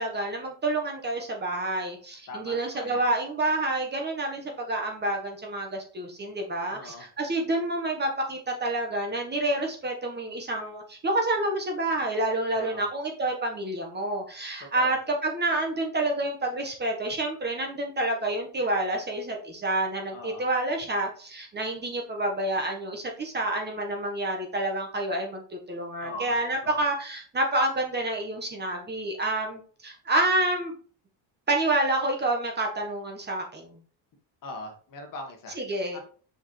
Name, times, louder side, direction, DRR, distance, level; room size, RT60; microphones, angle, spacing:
voice 1, 0.0-30.7 31.5-33.8 35.6-36.0, right 2 dB, 20° right, 2 dB, 1.3 m, -28 dB
voice 2, 2.3-3.0 6.7-7.1 12.5-12.8 14.7-14.9 20.1-20.4 26.0-26.3 26.6-26.8 34.4-35.6 35.9-36.0, left 1 dB, 45° left, 4 dB, 1.7 m, -40 dB
6.3 x 5.4 x 3.2 m, 0.43 s
cardioid pair, 155°, 47 cm